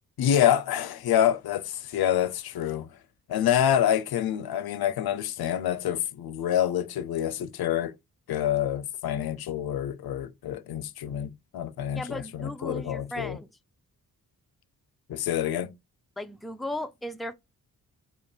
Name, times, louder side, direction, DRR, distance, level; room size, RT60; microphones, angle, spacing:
voice 1, 0.2-2.9 3.3-7.9 8.3-13.4 15.1-15.7, left 10 dB, 75° left, 0.5 m, -27 dB
voice 2, 12.0-13.5 16.2-17.3, left 1 dB, ahead, 0.5 m, -36 dB
3.1 x 2.9 x 4.3 m
cardioid pair, 50°, 37 cm